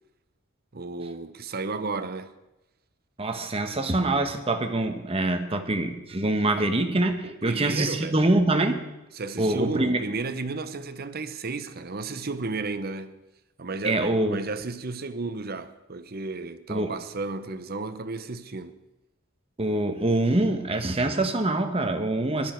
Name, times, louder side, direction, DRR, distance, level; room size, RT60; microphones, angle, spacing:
voice 1, 0.7-2.3 7.2-8.2 9.1-13.1 13.6-18.8, right 3 dB, 45° right, 0.9 m, -33 dB
voice 2, 3.2-8.8 9.4-10.0 13.8-14.4 16.7-16.9 19.6-22.5, right 2 dB, 30° right, 1.2 m, -25 dB
19.0 x 12.5 x 4.5 m
head